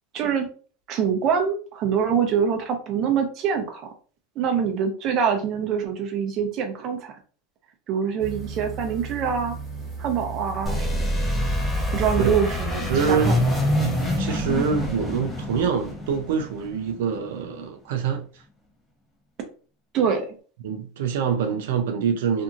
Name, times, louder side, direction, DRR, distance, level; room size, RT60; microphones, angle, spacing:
voice 1, 0.1-0.5 0.9-3.9 4.4-7.2 7.9-9.6 10.0-11.1 11.9-13.4 19.9-20.3, right 7 dB, 40° right, 0.7 m, -24 dB
sound 1, 8.2-14.2, right 4 dB, 15° right, 1.1 m, -36 dB
sound 2, 10.7-17.2, left 1 dB, 5° left, 0.7 m, -26 dB
voice 2, 12.9-13.4 14.2-18.4 20.6-22.4, right 6 dB, 85° right, 0.4 m, -25 dB
2.8 x 2.6 x 2.4 m
supercardioid pair, 155°, 0 cm